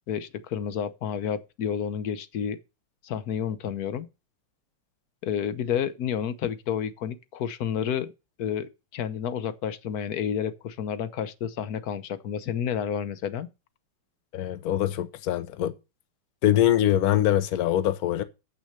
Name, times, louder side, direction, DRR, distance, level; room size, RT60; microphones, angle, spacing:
voice 1, 0.1-2.6 3.0-4.1 5.2-8.1 8.4-13.5, left 8 dB, 60° left, 1.1 m, -30 dB
voice 2, 14.3-15.7 16.4-18.2, left 12 dB, 90° left, 0.8 m, -23 dB
8.4 x 6.2 x 6.6 m
omnidirectional pair, 2.4 m